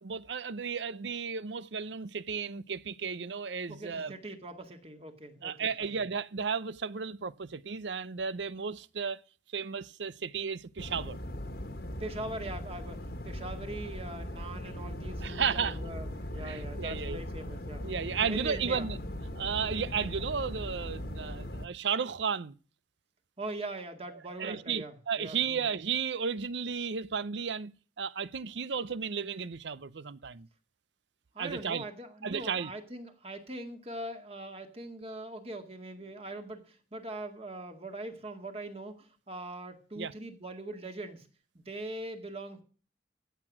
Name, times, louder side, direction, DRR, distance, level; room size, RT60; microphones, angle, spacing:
voice 1, 0.0-4.1 5.4-9.2 9.5-11.2 15.2-15.8 16.4-17.2 17.8-19.0 19.4-22.5 24.4-27.7 28.0-30.5 31.4-31.8 32.2-32.7 40.0-40.1, right 6 dB, 75° right, 0.6 m, -34 dB
voice 2, 3.7-5.9 12.0-17.9 18.2-18.9 23.4-25.8 31.3-41.3 41.5-42.6, right 2 dB, 35° right, 2.0 m, -42 dB
sound 1, 10.8-21.7, left 1 dB, 55° left, 1.4 m, -39 dB
15.0 x 8.0 x 6.0 m
head